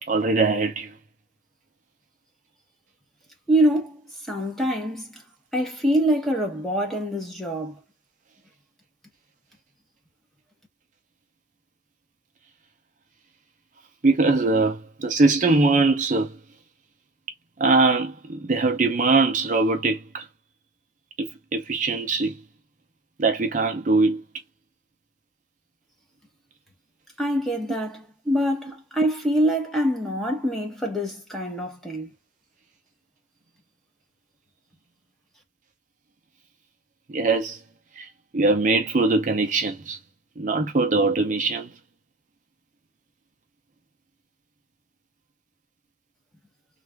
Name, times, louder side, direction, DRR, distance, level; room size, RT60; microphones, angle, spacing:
voice 1, 0.1-0.9 14.0-16.3 17.6-20.2 21.2-22.3 23.2-24.2 37.1-37.6 38.0-38.1 38.3-40.0 40.4-41.7, right 3 dB, 45° right, 0.6 m, -22 dB
voice 2, 3.5-4.0 4.3-5.1 5.5-7.8 27.2-32.1, right 1 dB, ahead, 1.0 m, -24 dB
3.2 x 2.4 x 3.3 m
head